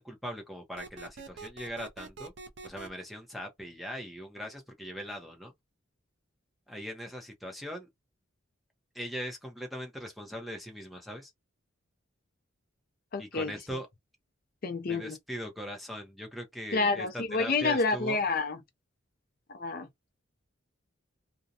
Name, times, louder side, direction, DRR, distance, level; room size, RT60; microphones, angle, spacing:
voice 1, 0.0-2.3 2.6-5.5 6.7-7.9 8.9-11.3 13.2-13.9 14.9-18.2, equal, ahead, 0.6 m, -40 dB
sound 1, 0.8-2.9, right 4 dB, 60° right, 0.5 m, -44 dB
voice 2, 13.1-13.5 14.6-15.2 16.7-18.6 19.5-19.9, left 3 dB, 45° left, 0.5 m, -29 dB
2.5 x 2.1 x 2.7 m
head